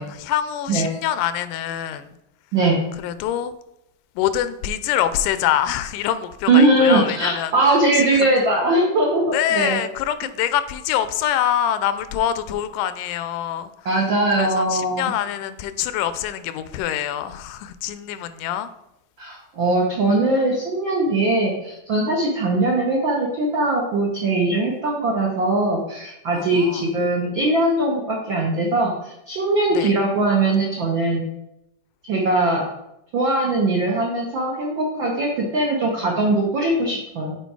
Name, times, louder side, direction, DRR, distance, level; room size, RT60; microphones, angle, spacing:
voice 1, 0.0-2.2 3.0-3.5 4.2-7.5 7.9-8.3 9.3-13.9 14.3-18.7 26.3-26.9 29.7-29.9, left 11 dB, 85° left, 12 dB, 2.1 m, -25 dB
voice 2, 2.5-2.8 6.5-9.8 13.8-15.1 19.2-31.2 32.1-32.6 33.1-37.4, right 2 dB, 85° right, -1 dB, 1.0 m, -20 dB
6.8 x 4.4 x 4.6 m, 0.84 s
omnidirectional pair, 3.6 m